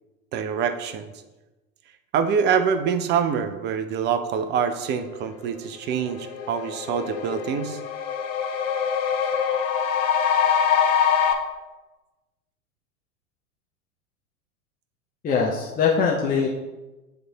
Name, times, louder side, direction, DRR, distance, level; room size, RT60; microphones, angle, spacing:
voice 1, 0.3-1.1 2.1-7.8, right 7 dB, 25° right, 10 dB, 0.5 m, -25 dB
sound 1, 5.6-5.7 6.0-11.3, left 7 dB, 60° left, 1.0 m, -24 dB
voice 2, 15.2-16.5, left 5 dB, 20° left, -2 dB, 0.7 m, -22 dB
9.5 x 3.2 x 3.9 m, 1.1 s
hypercardioid pair, 95°, 44 cm